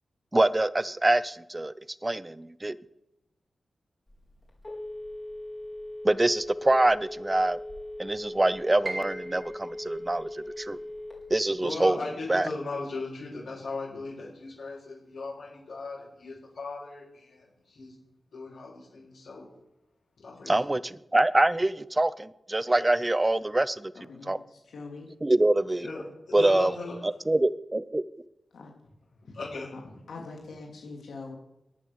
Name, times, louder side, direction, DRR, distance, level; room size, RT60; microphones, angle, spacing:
voice 1, 0.3-1.7 2.0-2.8 6.0-7.6 8.0-10.8 11.3-12.0 12.3-12.5 20.5-24.4 25.2-25.9 26.3-26.7 27.0-28.0, right 2 dB, 15° right, 17 dB, 0.6 m, -25 dB
Telephone, 4.1-11.4, left 1 dB, 25° left, 4.4 m, -40 dB
Piano, 8.8-14.8 15.1-16.3 16.7-16.8 17.5-17.8, right 2 dB, 35° right, 2.1 m, -44 dB
voice 2, 11.6-17.9 18.3-19.5 20.2-20.5 25.8-26.9 29.3-30.0, left 3 dB, 65° left, -9 dB, 7.7 m, -38 dB
voice 3, 24.1-25.1 28.5-28.7 30.1-31.4, left 3 dB, 90° left, 0 dB, 2.9 m, -43 dB
15.0 x 11.0 x 7.1 m, 0.91 s
wide cardioid pair, 150°, 0 cm